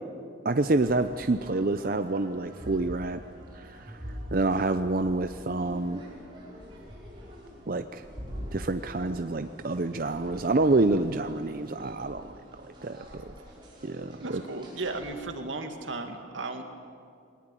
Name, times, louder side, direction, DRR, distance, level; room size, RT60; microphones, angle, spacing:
voice 1, 0.4-3.2 3.5-4.0 4.3-6.0 7.7-8.0 8.5-12.3 12.8-13.2 13.8-14.4, right 2 dB, 50° right, 9 dB, 0.6 m, -27 dB
sound 1, 0.6-15.1, equal, 25° right, 5.7 m, -45 dB
voice 2, 14.2-16.6, right 3 dB, 85° right, 5 dB, 2.2 m, -35 dB
21.0 x 19.0 x 9.1 m, 2.3 s
head